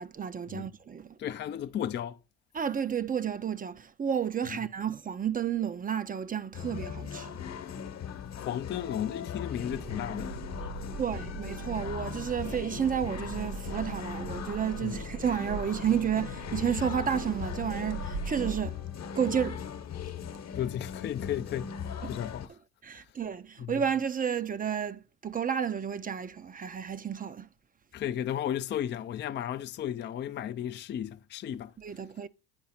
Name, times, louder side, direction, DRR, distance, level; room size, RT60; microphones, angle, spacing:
voice 1, 0.0-1.2 2.5-7.4 11.0-18.8 19.1-19.6 22.0-22.1 22.8-27.5 31.8-32.3, right 8 dB, 25° right, 0.5 m, -31 dB
voice 2, 1.2-2.2 4.5-4.6 8.4-10.4 10.8-10.9 14.8-15.0 20.5-21.7 22.1-22.5 23.6-23.7 27.9-31.7, left 10 dB, 30° left, 0.4 m, -34 dB
sound 1, 6.5-22.5, left 7 dB, 50° left, 1.1 m, -39 dB
sound 2, 9.6-18.7, right 4 dB, 75° right, 1.8 m, -41 dB
9.5 x 4.7 x 4.2 m
supercardioid pair, 85°, 34 cm